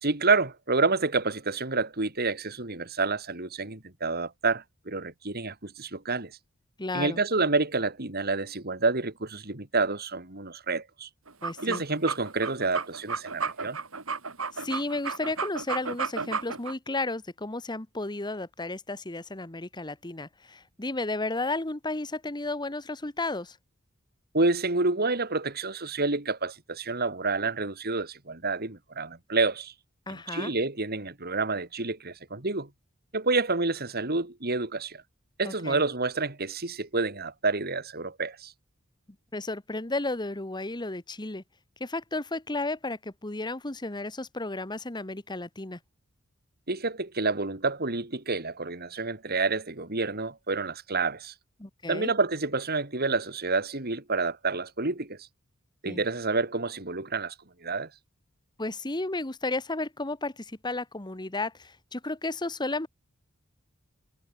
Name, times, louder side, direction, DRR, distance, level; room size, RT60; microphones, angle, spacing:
voice 1, 0.0-6.3 6.9-11.1 11.6-13.8 24.3-29.7 30.1-32.7 33.1-35.0 35.4-38.5 46.7-51.3 51.9-55.2 55.8-57.3 57.6-57.9, right 3 dB, 50° right, 3.1 m, -28 dB
voice 2, 6.8-7.2 11.4-11.8 14.5-23.6 30.1-30.5 35.4-35.8 39.3-41.4 41.8-45.8 51.6-52.1 55.8-56.0 58.6-62.9, left 2 dB, 20° left, 1.4 m, -33 dB
sound 1, 11.3-16.7, right 5 dB, 80° right, 5.1 m, -33 dB
head